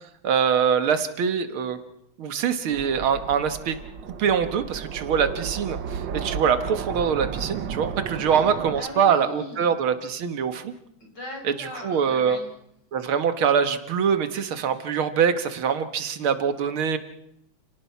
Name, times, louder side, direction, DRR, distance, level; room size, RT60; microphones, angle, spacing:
voice 1, 0.2-1.8 2.2-3.8 4.2-10.7 11.6-12.4 12.9-17.0, right 7 dB, 85° right, 10 dB, 2.3 m, -24 dB
sound 1, 2.7-8.8, right 7 dB, 65° right, 1.7 m, -33 dB
voice 2, 8.3-9.7 11.0-12.5, left 2 dB, 55° left, 1 dB, 6.4 m, -40 dB
29.0 x 18.5 x 5.8 m, 0.76 s
omnidirectional pair, 2.2 m